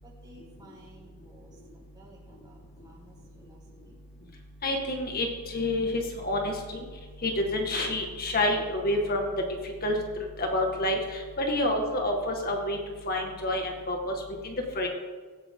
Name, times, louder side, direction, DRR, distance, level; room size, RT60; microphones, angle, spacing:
voice 1, 0.0-4.0, right 1 dB, 20° right, -5 dB, 5.6 m, -55 dB
voice 2, 4.6-5.3 5.5-6.5 7.2-9.3 9.6-10.0 10.4-12.8 13.1-14.1 14.4-14.9, left 1 dB, 45° left, 2 dB, 2.0 m, -28 dB
17.5 x 16.0 x 3.9 m, 1.4 s
head